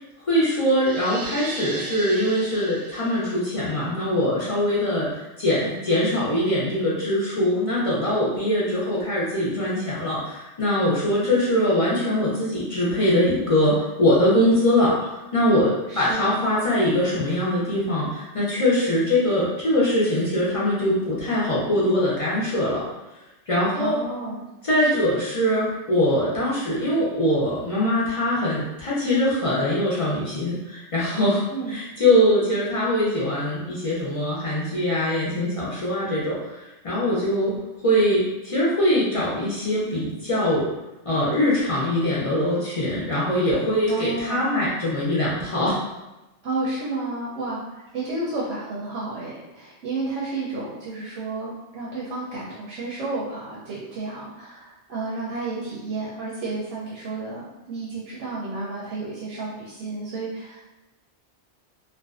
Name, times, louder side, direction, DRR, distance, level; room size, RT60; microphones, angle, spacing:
voice 1, 0.3-15.0 15.3-22.9 23.5-24.0 24.6-31.4 31.7-40.7 41.0-45.9, left 1 dB, 50° left, -7 dB, 0.4 m, -22 dB
sound 1, 0.8-3.4, right 2 dB, 55° right, 0.6 m, -37 dB
voice 2, 15.9-16.3 23.7-24.4 24.8-25.1 31.5-31.8 43.9-44.4 46.4-60.6, right 3 dB, 90° right, -5 dB, 0.9 m, -31 dB
2.5 x 2.1 x 2.4 m, 1.0 s
omnidirectional pair, 1.2 m